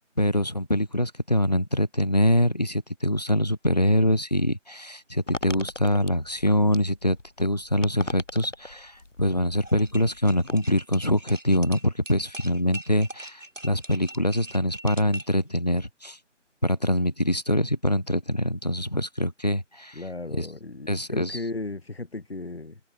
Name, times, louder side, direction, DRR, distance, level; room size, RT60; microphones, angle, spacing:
voice 1, 0.2-16.2 16.6-20.0 20.4-20.5 20.9-21.4, left 1 dB, 35° left, 0.7 m, -24 dB
sound 1, 5.3-10.5, left 2 dB, 75° left, 2.5 m, -39 dB
sound 2, 9.6-15.4, right 2 dB, 85° right, 2.9 m, -42 dB
voice 2, 19.9-22.8, left 2 dB, 55° left, 2.7 m, -35 dB
figure-of-eight pair, 165°, 37 cm